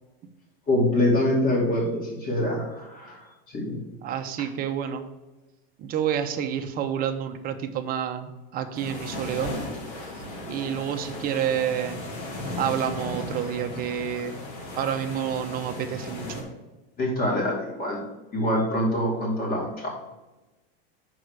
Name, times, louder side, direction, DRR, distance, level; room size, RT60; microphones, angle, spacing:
voice 1, 0.7-3.7 17.0-18.0 18.3-19.9, left 1 dB, 30° left, -1 dB, 2.6 m, -25 dB
voice 2, 4.0-5.0 5.8-9.5 10.5-12.0 12.6-14.4 14.8-16.4, right 9 dB, 30° right, 7 dB, 0.7 m, -29 dB
sound 1, 8.7-16.4, left 1 dB, 70° left, 3.0 m, -36 dB
6.1 x 4.7 x 6.6 m, 1.1 s
supercardioid pair, 140°, 29 cm